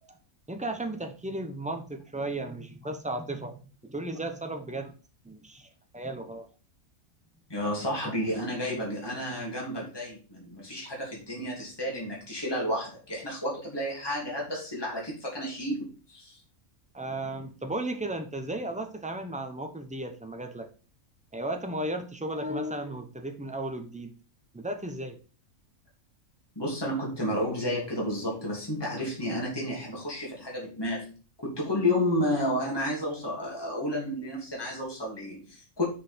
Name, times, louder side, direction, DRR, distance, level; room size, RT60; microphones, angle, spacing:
voice 1, 0.5-4.9 5.2-6.5 16.9-20.7 21.3-24.1 24.5-25.2, right 1 dB, 5° right, 6 dB, 0.7 m, -35 dB
voice 2, 7.5-16.4 26.6-31.1 31.4-35.8, left 1 dB, 15° left, -4 dB, 2.9 m, -31 dB
6.6 x 5.7 x 5.1 m, 0.36 s
omnidirectional pair, 1.5 m